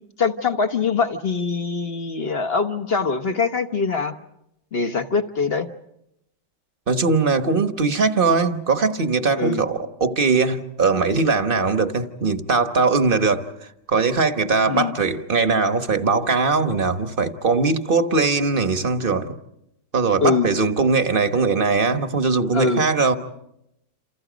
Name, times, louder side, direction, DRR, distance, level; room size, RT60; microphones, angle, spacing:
voice 1, 0.2-4.2 4.7-5.7 9.4-9.6 14.7-14.9 20.2-20.5 22.5-22.9, left 4 dB, 40° left, 1.1 m, -23 dB
voice 2, 6.9-13.5 13.9-19.3 19.9-23.2, right 4 dB, 35° right, 1.2 m, -20 dB
28.5 x 28.0 x 5.1 m
omnidirectional pair, 1.9 m